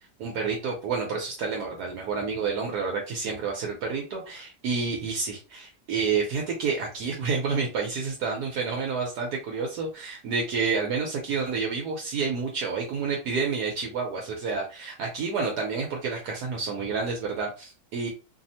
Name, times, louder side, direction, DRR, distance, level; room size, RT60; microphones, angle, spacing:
voice 1, 0.2-18.1, right 5 dB, 70° right, 0 dB, 1.2 m, -29 dB
3.2 x 2.0 x 2.7 m, 0.31 s
omnidirectional pair, 1.9 m